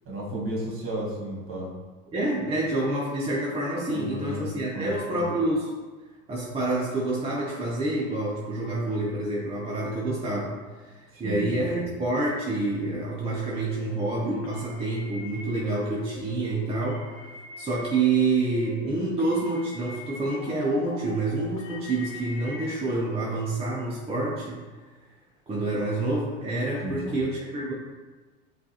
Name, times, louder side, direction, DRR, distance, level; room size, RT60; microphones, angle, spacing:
voice 1, 0.0-1.7 3.9-4.5 4.7-5.2 11.1-11.9 26.8-27.2, right 1 dB, 35° right, -3 dB, 1.5 m, -34 dB
voice 2, 2.1-5.7 6.3-17.2 17.6-24.6 25.5-27.7, right 2 dB, 15° right, -3 dB, 0.4 m, -28 dB
sound 1, 13.2-22.8, left 3 dB, 55° left, 0.9 m, -42 dB
5.8 x 2.4 x 2.8 m, 1.3 s
supercardioid pair, 105°, 39 cm